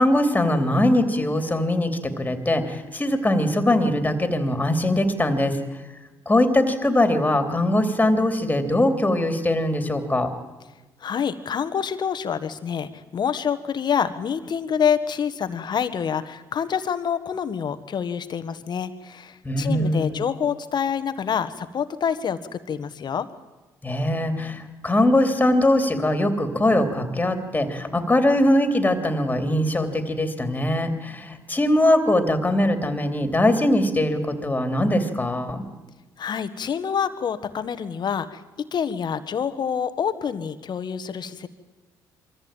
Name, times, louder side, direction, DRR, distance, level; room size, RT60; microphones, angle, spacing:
voice 1, 0.0-5.6 6.2-10.3 19.4-20.2 23.8-35.6, left 1 dB, 20° left, 8 dB, 3.2 m, -21 dB
voice 2, 11.0-23.3 36.2-38.4 38.7-41.5, left 7 dB, 55° left, 12 dB, 1.6 m, -27 dB
23.0 x 14.5 x 9.1 m, 1.2 s
supercardioid pair, 65°, 9 cm